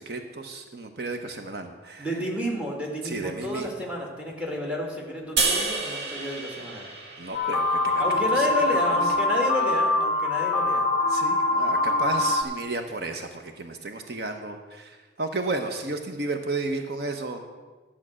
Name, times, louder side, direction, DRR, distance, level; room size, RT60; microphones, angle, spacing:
voice 1, 0.0-2.1 3.0-3.9 7.2-8.8 11.1-17.4, right 3 dB, 60° right, 5 dB, 0.8 m, -33 dB
voice 2, 2.0-6.9 8.0-10.9, left 1 dB, 5° right, 0 dB, 1.7 m, -31 dB
sound 1, 5.4-8.6, right 3 dB, 90° right, 1.7 m, -30 dB
sound 2, 7.3-12.4, left 2 dB, 30° left, 1.0 m, -23 dB
11.0 x 7.4 x 6.2 m, 1.3 s
head